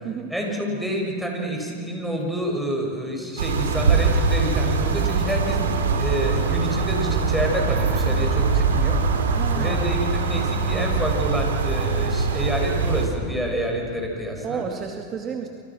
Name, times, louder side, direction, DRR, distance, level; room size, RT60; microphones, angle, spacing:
voice 1, 0.3-9.0 9.5-14.6, equal, 5° right, 0 dB, 7.3 m, -28 dB
sound 1, 3.4-13.1, right 4 dB, 90° right, 3.6 m, -22 dB
voice 2, 9.3-10.0 14.4-15.5, right 7 dB, 35° right, 3 dB, 2.3 m, -32 dB
27.5 x 27.0 x 6.4 m, 2.5 s
hypercardioid pair, 110°, 0 cm